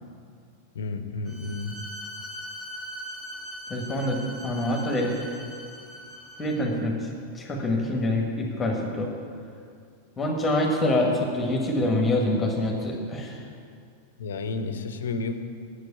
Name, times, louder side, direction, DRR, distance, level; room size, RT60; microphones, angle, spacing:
voice 1, 0.7-1.8 14.2-15.4, left 3 dB, 65° left, 8 dB, 0.9 m, -31 dB
Bowed string instrument, 1.2-6.7, equal, 10° right, 1.9 m, -40 dB
voice 2, 3.7-4.2 4.4-5.1 6.4-6.9 7.3-9.1 10.2-13.4, left 1 dB, 20° left, 0 dB, 1.7 m, -25 dB
9.0 x 7.9 x 8.5 m, 2.3 s
figure-of-eight pair, 90°, 0 cm